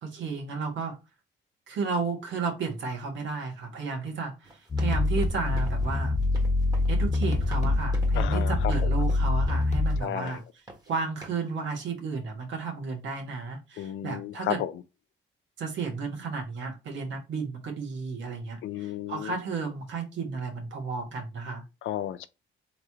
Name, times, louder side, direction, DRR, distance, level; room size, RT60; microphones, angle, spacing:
voice 1, 0.0-1.0 1.7-6.1 6.9-10.4 10.9-14.6 15.6-21.6, right 4 dB, 70° right, 1.7 m, -33 dB
sound 1, 4.4-10.0 10.3-10.9 11.2-11.5, right 2 dB, 20° right, 1.5 m, -47 dB
sound 2, 4.7-10.0, left 2 dB, 35° left, 1.1 m, -25 dB
voice 2, 8.1-8.9 10.0-10.4 13.8-14.8 18.6-19.3 21.8-22.3, left 11 dB, 75° left, 0.5 m, -33 dB
3.9 x 3.1 x 3.6 m
cardioid pair, 90°, 20 cm